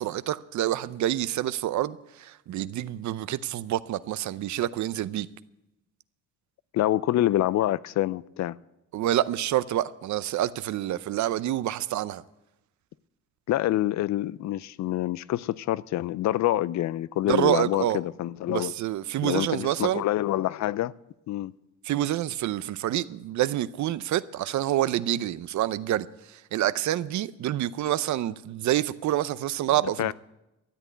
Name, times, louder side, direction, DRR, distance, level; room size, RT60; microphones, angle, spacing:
voice 1, 0.0-5.3 8.9-12.2 17.3-18.0 18.5-20.0 21.8-30.1, right 13 dB, 70° right, 0.7 m, -27 dB
voice 2, 6.7-8.6 13.5-18.7 19.2-20.9 21.3-21.5 30.0-30.1, left 14 dB, 65° left, 0.5 m, -26 dB
13.0 x 8.4 x 9.1 m
cardioid pair, 90°, 30 cm